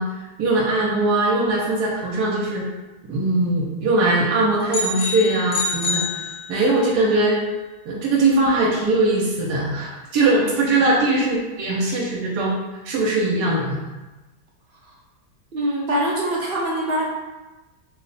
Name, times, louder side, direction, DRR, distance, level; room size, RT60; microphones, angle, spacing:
voice 1, 0.0-2.6 3.1-7.4 7.9-12.6 12.8-13.8, right 2 dB, 85° right, -3 dB, 1.2 m, -21 dB
sound 1, 4.7-6.9, left 3 dB, 90° left, 1.2 m, -27 dB
voice 2, 15.5-17.1, right 1 dB, 55° right, -4 dB, 0.6 m, -24 dB
2.8 x 2.1 x 3.9 m, 1.1 s
omnidirectional pair, 1.7 m